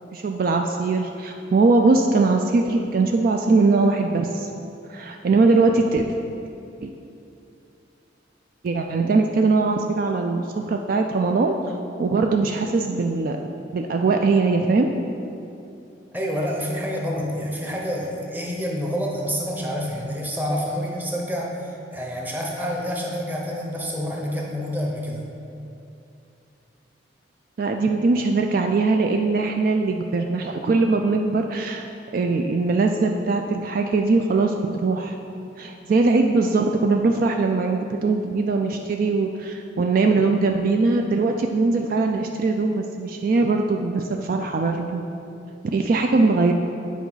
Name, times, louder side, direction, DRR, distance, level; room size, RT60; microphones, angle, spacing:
voice 1, 0.1-4.5 4.9-6.0 6.8-6.9 8.6-11.6 12.0-13.4 13.7-14.9 27.6-31.9 32.1-34.6 34.8-35.1 35.6-45.0 45.7-46.5, right 3 dB, 50° right, 3 dB, 0.3 m, -21 dB
voice 2, 16.1-25.2, equal, 10° right, -2 dB, 0.8 m, -28 dB
8.2 x 4.7 x 4.0 m, 2.7 s
head